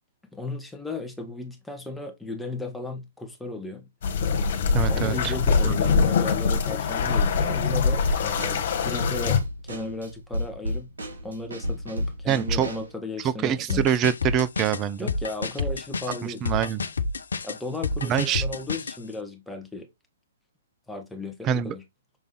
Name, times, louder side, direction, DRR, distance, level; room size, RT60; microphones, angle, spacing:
voice 1, 0.3-3.9 4.9-9.4 9.6-10.9 11.2-13.9 15.0-16.4 17.4-19.9 20.9-21.8, left 2 dB, 5° left, 1.6 m, -35 dB
sound 1, 4.0-9.4, left 5 dB, 55° left, 1.8 m, -23 dB
voice 2, 4.7-5.3 5.6-5.8 12.3-12.7 13.2-15.1 16.2-16.8 18.0-18.4 21.4-21.7, right 9 dB, 25° right, 0.7 m, -25 dB
Drum kit / Snare drum, 7.7-12.9, equal, 80° right, 2.8 m, -32 dB
sound 2, 13.7-19.0, left 4 dB, 75° left, 0.7 m, -29 dB
6.8 x 3.4 x 4.1 m
hypercardioid pair, 130°, 0 cm